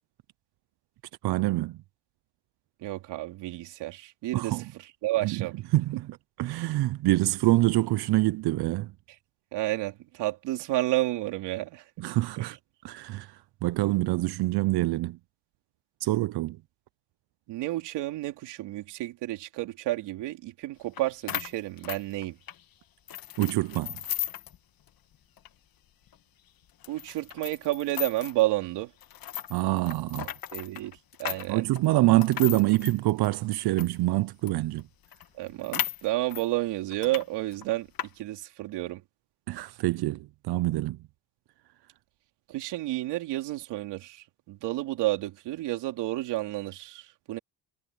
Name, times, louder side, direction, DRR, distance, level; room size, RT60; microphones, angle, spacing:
voice 1, 1.2-1.8 4.3-4.6 5.2-5.5 5.7-8.9 12.0-12.6 12.8-15.2 16.0-16.6 23.4-24.0 29.5-30.3 31.5-34.8 39.5-41.0, right 18 dB, 70° right, 0.6 m, -26 dB
voice 2, 2.8-5.6 9.5-11.9 12.4-12.6 17.5-22.4 26.9-28.9 30.5-31.6 35.4-37.9 38.2-39.0 42.5-47.4, right 17 dB, 90° right, 3.4 m, -31 dB
sound 1, 21.0-21.1 21.3-22.6 23.1-24.6 24.9-25.0 25.4-25.5 26.1-26.2 26.8-28.4 29.0-34.0 34.5-34.6 34.8-34.9 35.1-36.5 36.9-37.2 37.5-38.1, left 11 dB, 60° left, 1.6 m, -36 dB
cardioid pair, 80°, 40 cm